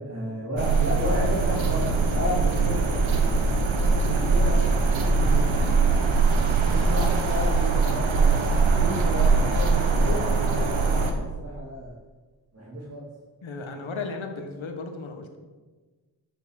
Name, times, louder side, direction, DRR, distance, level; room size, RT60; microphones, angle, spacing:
voice 1, 0.0-3.0 3.9-5.5 6.6-11.9 12.5-13.0, equal, 35° right, -6 dB, 3.0 m, -33 dB
sound 1, 0.6-11.1, right 4 dB, 85° right, 1.6 m, -22 dB
voice 2, 13.4-15.4, left 3 dB, 85° left, 4 dB, 1.9 m, -35 dB
13.5 x 6.5 x 6.7 m, 1.3 s
wide cardioid pair, 80°, 46 cm